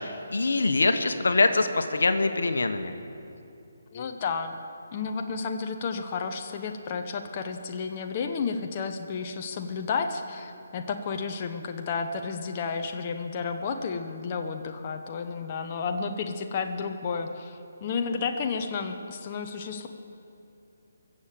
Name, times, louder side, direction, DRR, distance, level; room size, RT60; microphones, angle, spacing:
voice 1, 0.0-2.9, left 3 dB, 80° left, 8 dB, 1.1 m, -24 dB
voice 2, 3.9-4.6 4.9-19.9, left 5 dB, 30° left, 4 dB, 0.9 m, -32 dB
22.5 x 7.6 x 7.6 m, 2.6 s
hypercardioid pair, 160°, 0 cm